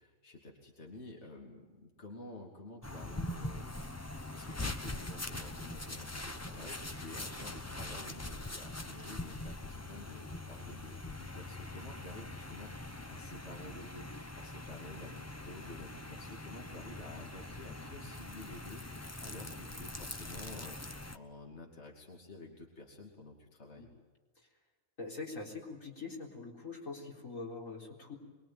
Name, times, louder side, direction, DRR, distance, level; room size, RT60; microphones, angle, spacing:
voice 1, 0.0-23.9, left 2 dB, 55° left, 0 dB, 3.0 m, -51 dB
sound 1, 2.8-21.2, left 2 dB, 15° left, 0.8 m, -43 dB
voice 2, 25.0-28.2, left 3 dB, 80° left, -1 dB, 4.5 m, -43 dB
24.5 x 22.0 x 9.3 m, 1.3 s
omnidirectional pair, 1.4 m